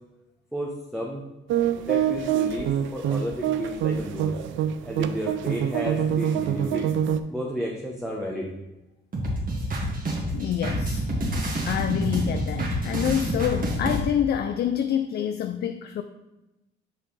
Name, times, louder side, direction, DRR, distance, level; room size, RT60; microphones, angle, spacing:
voice 1, 0.5-1.2 1.8-4.3 4.8-6.9 7.3-8.5, equal, ahead, 0.8 m, -32 dB
sound 1, 1.5-7.2, right 9 dB, 75° right, 0.4 m, -25 dB
sound 2, 9.1-14.0, right 1 dB, 45° right, 1.7 m, -27 dB
voice 2, 10.3-11.0 11.6-16.0, left 9 dB, 55° left, 0.4 m, -27 dB
6.1 x 5.6 x 3.2 m
cardioid pair, 90°, 20 cm